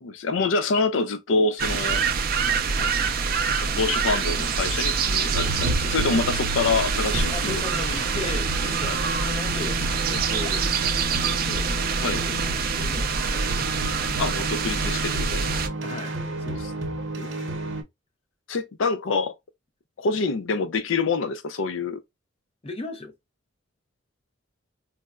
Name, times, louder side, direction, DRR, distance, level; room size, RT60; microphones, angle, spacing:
voice 1, 0.0-2.0 3.5-7.6 12.0-12.2 14.2-15.5 17.2-17.6 18.5-19.4 20.0-22.0, left 4 dB, 80° left, 0.4 m, -26 dB
sound 1, 1.6-15.7, right 5 dB, 50° right, 0.4 m, -25 dB
sound 2, 5.3-17.8, right 1 dB, 70° right, 0.8 m, -33 dB
voice 2, 7.3-9.8 10.1-10.7 11.1-13.9 15.8-16.7 22.6-23.1, left 3 dB, 30° left, 0.6 m, -37 dB
4.0 x 2.1 x 2.3 m
head